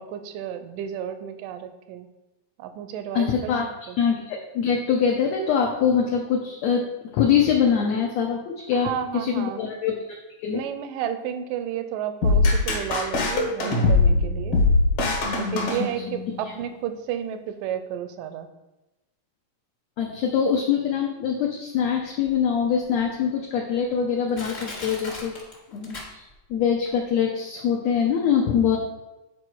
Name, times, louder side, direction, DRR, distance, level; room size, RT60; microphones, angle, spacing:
voice 1, 0.0-2.1 2.6-3.5 3.9-4.0 8.7-9.6 10.5-14.6 15.3-18.5, right 9 dB, 85° right, 9 dB, 2.3 m, -32 dB
voice 2, 3.1-3.7 4.0-10.6 15.8-15.9 20.0-25.3 25.7-26.2 26.5-28.8, left 7 dB, 75° left, 0 dB, 1.7 m, -24 dB
sound 1, 12.2-16.4, left 3 dB, 50° left, 2.2 m, -21 dB
Crushing, 22.3-22.4 23.0-23.1 23.8-23.9 24.3-26.5 26.9-27.0, left 2 dB, 30° left, 1.2 m, -38 dB
8.7 x 4.7 x 4.6 m, 1.0 s
omnidirectional pair, 3.8 m